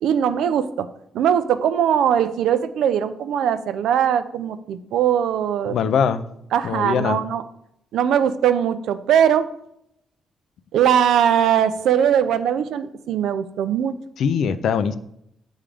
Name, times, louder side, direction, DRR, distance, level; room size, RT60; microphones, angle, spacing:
voice 1, 0.0-0.9 1.1-5.8 6.5-7.4 7.9-9.5 10.7-13.9, right 9 dB, 90° right, 11 dB, 0.4 m, -20 dB
voice 2, 5.7-6.2 6.6-7.2 14.2-14.9, left 7 dB, 75° left, 12 dB, 0.4 m, -21 dB
8.4 x 3.6 x 3.3 m, 0.76 s
cardioid pair, 115°, 0 cm